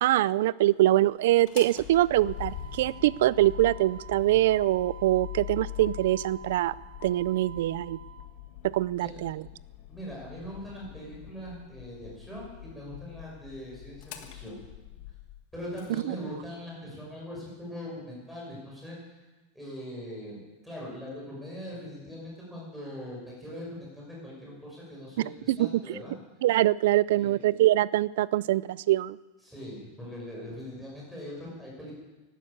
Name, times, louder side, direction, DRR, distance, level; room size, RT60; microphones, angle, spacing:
voice 1, 0.0-6.7 7.0-8.0 8.6-9.4 16.1-16.3 25.5-26.0 26.4-29.2, right 15 dB, 65° right, 21 dB, 0.4 m, -24 dB
Motor vehicle (road), 1.3-16.0, left 8 dB, 45° left, 1.5 m, -43 dB
voice 2, 9.9-14.6 15.5-19.0 19.5-26.1 27.1-27.3 29.4-31.9, equal, ahead, -5 dB, 5.8 m, -41 dB
12.5 x 12.0 x 8.7 m, 1.2 s
supercardioid pair, 170°, 0 cm